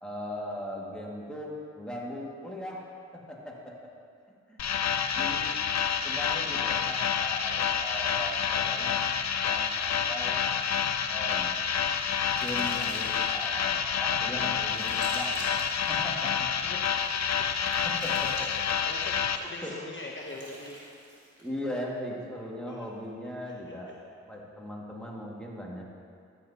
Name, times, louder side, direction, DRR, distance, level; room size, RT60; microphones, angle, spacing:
voice 1, 0.0-2.8 3.1-3.7 4.5-4.6 5.2-5.5 6.0-9.0 9.4-10.4 11.1-11.6 12.4-15.6 15.9-16.3 17.8-18.3 19.6-19.7 21.4-26.0, left 1 dB, 5° left, -4 dB, 1.9 m, -38 dB
sound 1, 4.6-19.4, left 7 dB, 65° left, 0.5 m, -28 dB
sound 2, 11.2-13.5 14.0-16.0 16.9-19.0 20.0-21.6, right 1 dB, 55° right, 1.9 m, -48 dB
voice 2, 18.8-20.9 22.7-22.9 23.5-23.6 23.9-24.0, left 2 dB, 40° left, -2 dB, 0.9 m, -42 dB
13.0 x 7.9 x 2.8 m, 2.3 s
cardioid pair, 55°, 29 cm